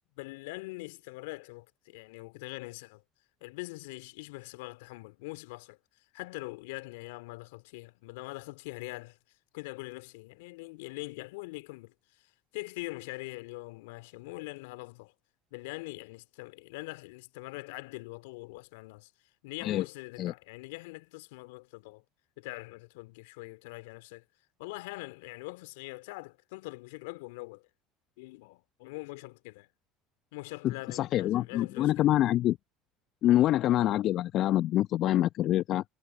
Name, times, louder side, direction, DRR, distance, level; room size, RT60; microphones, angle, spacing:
voice 1, 0.2-3.0 3.4-9.2 9.5-15.1 15.5-19.1 19.4-22.0 22.4-24.2 24.6-27.7 28.2-29.7 30.3-32.1, left 24 dB, 70° left, 2.5 m, -43 dB
voice 2, 30.6-32.6 33.2-35.8, left 13 dB, 50° left, 1.0 m, -26 dB
hypercardioid pair, 70°, 0 cm